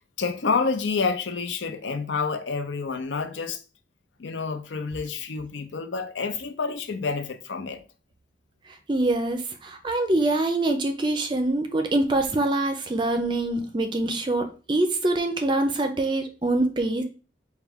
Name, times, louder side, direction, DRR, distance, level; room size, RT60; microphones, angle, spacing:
voice 1, 0.2-3.6 4.2-7.8, left 4 dB, 90° left, 0.6 m, -28 dB
voice 2, 8.9-17.0, right 2 dB, 25° right, 0.4 m, -24 dB
4.5 x 2.3 x 3.5 m
head